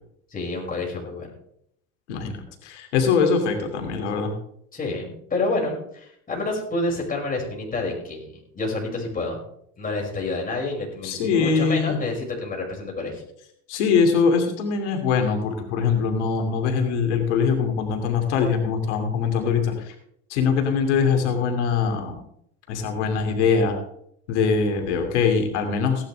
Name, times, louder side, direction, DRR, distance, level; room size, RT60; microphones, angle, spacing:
voice 1, 0.3-1.3 4.7-8.3 8.5-9.4 9.8-13.2, left 2 dB, 25° left, -1 dB, 5.9 m, -28 dB
voice 2, 2.6-4.3 11.0-12.0 13.7-19.9 20.3-22.2 22.7-23.8 24.3-26.1, left 5 dB, 85° left, 4 dB, 2.6 m, -22 dB
17.0 x 11.5 x 3.4 m, 0.70 s
supercardioid pair, 95°, 34 cm